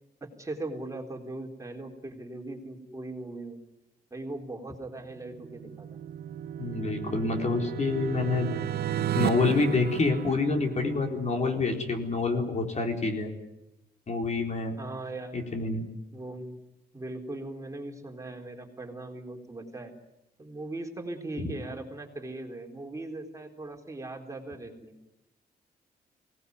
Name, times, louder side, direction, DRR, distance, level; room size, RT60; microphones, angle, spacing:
voice 1, 0.2-3.6 4.1-5.9 14.8-15.4 16.1-16.6 16.9-19.9 20.4-25.0, right 2 dB, 20° right, 2 dB, 4.0 m, -39 dB
sound 1, 5.2-11.0, right 11 dB, 85° right, 0.9 m, -34 dB
voice 2, 6.6-8.5 9.1-13.3 14.1-14.8 15.3-15.9, left 3 dB, 45° left, 3 dB, 4.3 m, -27 dB
24.0 x 19.0 x 9.5 m, 0.92 s
cardioid pair, 95°, 16 cm